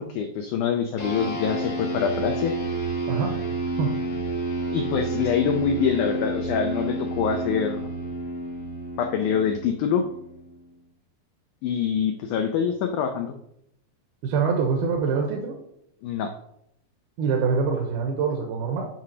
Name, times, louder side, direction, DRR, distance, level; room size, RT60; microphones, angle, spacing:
voice 1, 0.0-2.5 4.7-7.9 9.0-10.1 11.6-13.3 16.0-16.3, left 7 dB, 90° left, 5 dB, 1.8 m, -25 dB
sound 1, 1.0-10.7, right 2 dB, 70° left, 1.0 m, -30 dB
voice 2, 14.2-15.6 17.2-18.9, right 5 dB, 85° right, 1 dB, 2.7 m, -24 dB
9.0 x 4.8 x 2.8 m, 0.75 s
omnidirectional pair, 4.2 m